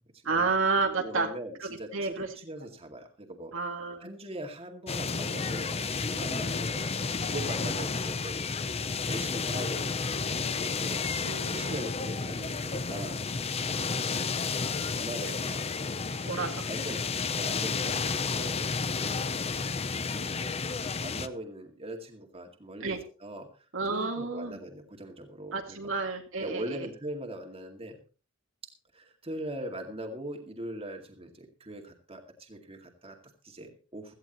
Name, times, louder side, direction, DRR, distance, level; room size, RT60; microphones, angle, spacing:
voice 1, 0.2-1.3 1.6-2.3 3.5-4.1 11.2-11.8 16.2-16.5 22.8-23.0 23.7-24.6 25.5-26.9, right 4 dB, 75° right, 3 dB, 2.2 m, -30 dB
voice 2, 1.0-3.5 4.0-8.5 9.1-13.2 13.6-14.3 14.9-15.7 16.3-19.7 20.1-20.3 21.0-23.5 23.9-25.8 26.4-28.0 28.9-34.1, right 1 dB, 30° right, 3 dB, 2.2 m, -41 dB
sound 1, 4.9-21.3, left 4 dB, 30° left, 0.7 m, -31 dB
17.0 x 14.0 x 3.0 m, 0.35 s
head